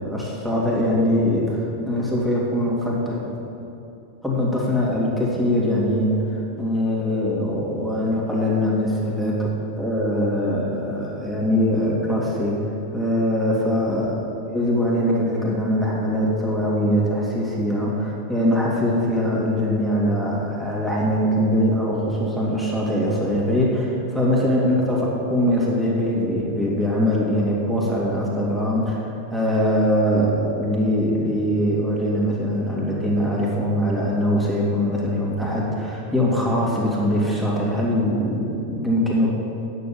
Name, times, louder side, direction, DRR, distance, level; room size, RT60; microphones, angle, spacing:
voice 1, 0.0-3.4 4.2-9.5 9.8-12.5 12.9-14.1 14.5-39.3, equal, 5° right, -5 dB, 2.3 m, -22 dB
9.2 x 6.9 x 7.6 m, 2.8 s
figure-of-eight pair, 90°, 0 cm